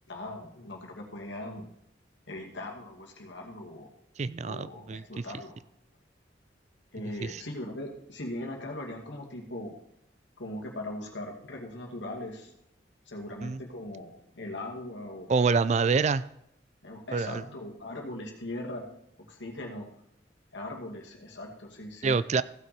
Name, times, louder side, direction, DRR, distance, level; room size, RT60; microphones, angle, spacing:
voice 1, 0.1-1.7 2.3-3.9 4.4-5.6 6.9-9.7 10.4-12.5 13.1-15.3 16.8-18.9 19.3-19.9 20.5-22.2, left 1 dB, 90° left, 0 dB, 2.3 m, -40 dB
voice 2, 4.2-5.2 7.2-7.4 13.4-13.6 15.3-16.2 17.1-17.4 22.0-22.4, right 5 dB, 40° right, 16 dB, 0.4 m, -26 dB
15.5 x 6.1 x 4.3 m, 0.76 s
head